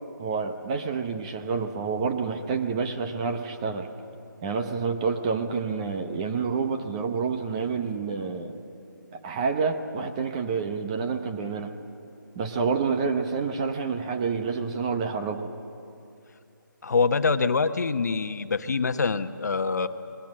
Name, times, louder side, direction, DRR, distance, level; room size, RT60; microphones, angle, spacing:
voice 1, 0.2-3.9 4.4-8.6 9.1-11.7 12.3-15.5, right 5 dB, 15° right, 6 dB, 0.9 m, -28 dB
voice 2, 16.8-19.9, left 4 dB, 55° left, 9 dB, 1.1 m, -25 dB
29.0 x 21.5 x 7.6 m, 2.6 s
figure-of-eight pair, 165°, 11 cm